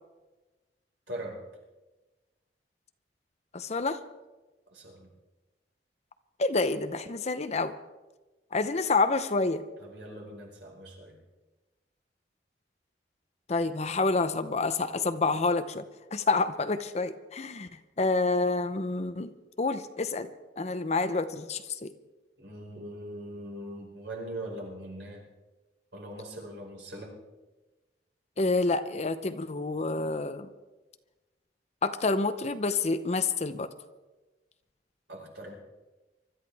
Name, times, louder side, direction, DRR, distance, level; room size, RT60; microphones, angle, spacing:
voice 1, 1.1-1.5 4.7-5.1 9.8-11.2 22.4-25.3 25.9-27.1 35.1-35.5, right 1 dB, 85° right, -1 dB, 4.9 m, -41 dB
voice 2, 3.5-4.0 6.4-7.7 8.5-9.6 13.5-15.8 16.1-17.7 18.0-19.3 19.6-20.3 20.6-21.9 28.4-30.5 31.8-33.7, left 3 dB, 40° left, 11 dB, 0.8 m, -28 dB
25.0 x 13.0 x 3.5 m, 1.1 s
head